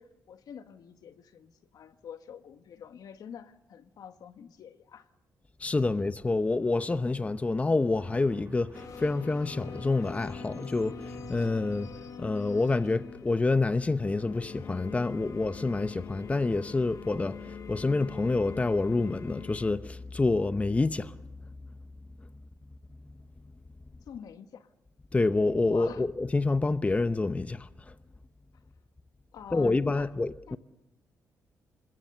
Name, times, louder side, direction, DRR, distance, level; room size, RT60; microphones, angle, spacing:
voice 1, 0.0-5.1 24.0-24.7 25.7-26.0 29.3-30.1 30.5-30.6, left 8 dB, 70° left, 1.4 m, -46 dB
voice 2, 5.6-11.9 12.2-21.1 25.1-27.9 29.5-30.6, left 3 dB, 20° left, 0.8 m, -27 dB
sound 1, 7.9-13.2, right 4 dB, 35° right, 1.8 m, -50 dB
sound 2, 8.7-19.7, left 6 dB, 55° left, 1.2 m, -44 dB
26.5 x 21.0 x 6.9 m
cardioid pair, 90°, 7 cm